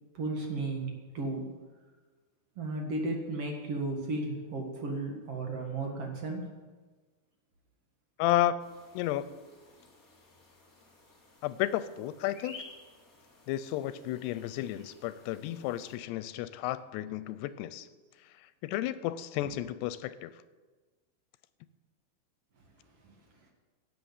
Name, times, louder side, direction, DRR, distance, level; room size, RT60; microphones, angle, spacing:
voice 1, 0.1-1.5 2.6-6.5, right 2 dB, 45° right, 2 dB, 2.2 m, -34 dB
voice 2, 8.2-8.6 8.9-9.3 11.4-12.6 13.5-17.9 18.6-20.3, left 13 dB, 90° left, 15 dB, 2.8 m, -32 dB
sound 1, 8.6-16.0, left 3 dB, 25° left, 2.3 m, -54 dB
16.5 x 8.2 x 7.3 m, 1.3 s
omnidirectional pair, 4.7 m